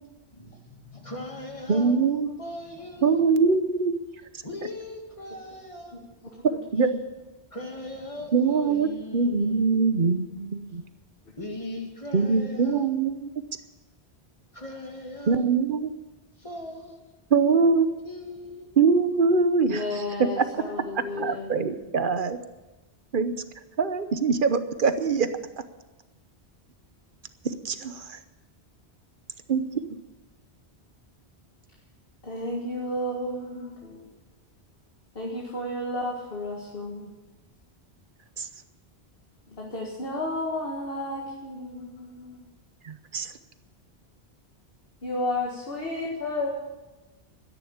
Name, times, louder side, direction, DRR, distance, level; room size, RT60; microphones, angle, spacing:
voice 1, 0.3-2.0 2.4-3.3 4.4-6.0 7.5-9.8 11.4-12.9 14.5-15.5 16.4-17.0 18.0-18.7, left 1 dB, 30° left, 1 dB, 2.4 m, -39 dB
voice 2, 1.7-2.3 3.0-4.0 6.7-7.0 8.3-8.9 9.1-10.8 12.1-13.3 15.3-15.9 17.3-17.9 18.8-20.0 20.4-20.5 20.9-22.4 23.1-23.3 23.8-25.3 27.6-28.2 29.5-29.6 38.4-38.5 42.8-43.3, right 5 dB, 55° right, 11 dB, 1.0 m, -23 dB
voice 3, 19.7-21.6 32.2-34.1 35.2-37.1 39.5-42.4 45.0-46.5, left 1 dB, 60° left, -2 dB, 2.0 m, -32 dB
13.0 x 10.5 x 8.7 m, 1.1 s
omnidirectional pair, 1.1 m